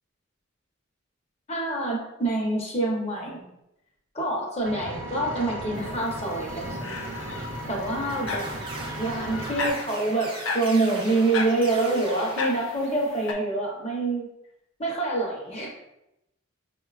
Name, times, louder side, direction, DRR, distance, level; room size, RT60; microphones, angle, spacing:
voice 1, 1.5-3.6 4.1-7.0 7.7-8.5 9.0-14.3 14.8-15.7, right 2 dB, 30° left, -2 dB, 0.7 m, -26 dB
Engine, 4.7-9.7, right 1 dB, 65° right, 0.7 m, -36 dB
sound 1, 5.7-13.3, left 3 dB, 65° left, 0.5 m, -36 dB
sound 2, 8.1-13.2, right 2 dB, 25° right, 0.4 m, -40 dB
5.2 x 2.2 x 2.4 m, 0.86 s
head